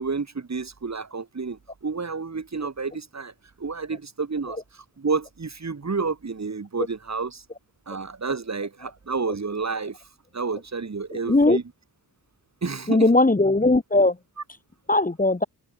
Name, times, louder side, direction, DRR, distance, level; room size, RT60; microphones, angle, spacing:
voice 1, 0.0-3.3 3.6-7.4 7.9-10.0 10.3-11.6 12.6-13.1, right 4 dB, 40° right, 3.2 m, -30 dB
voice 2, 11.3-11.6 12.9-14.2 14.9-15.4, left 2 dB, 20° left, 1.9 m, -19 dB
wide cardioid pair, 115°, 40 cm